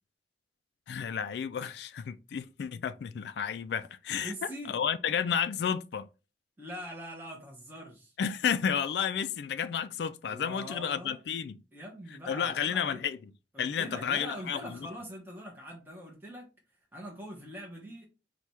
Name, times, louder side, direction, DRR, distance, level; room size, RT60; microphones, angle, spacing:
voice 1, 0.9-6.1 8.2-11.6 12.3-13.2 13.6-14.8, left 7 dB, 70° left, 0.3 m, -31 dB
voice 2, 4.2-4.8 6.6-8.1 10.2-11.2 11.7-13.0 13.5-16.5 16.9-18.0, equal, 10° right, 0.9 m, -43 dB
4.6 x 2.3 x 4.2 m
head